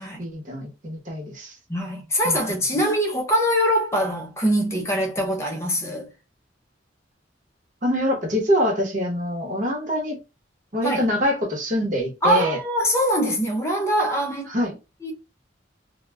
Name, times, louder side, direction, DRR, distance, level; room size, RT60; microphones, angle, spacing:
voice 1, 0.2-1.5 2.2-2.4 7.8-10.2 10.7-12.6 14.5-14.8, left 1 dB, 40° right, 0.9 m, -24 dB
voice 2, 1.7-6.1 10.8-11.0 12.2-14.5 15.0-15.1, equal, 15° left, 0.6 m, -23 dB
2.3 x 2.2 x 3.2 m
head